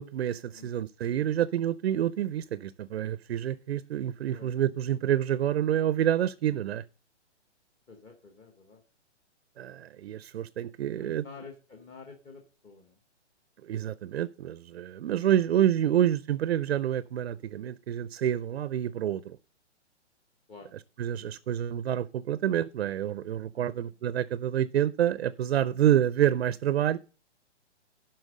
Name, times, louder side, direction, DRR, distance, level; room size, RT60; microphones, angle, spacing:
voice 1, 0.0-6.8 9.6-11.2 13.6-19.4 21.0-27.0, right 11 dB, 60° right, 0.6 m, -28 dB
voice 2, 7.9-8.8 10.8-13.0 15.4-15.5 20.5-20.7 23.5-24.0 25.6-25.8, left 4 dB, 15° left, 0.9 m, -50 dB
12.0 x 4.5 x 6.2 m
hypercardioid pair, 155°, 35 cm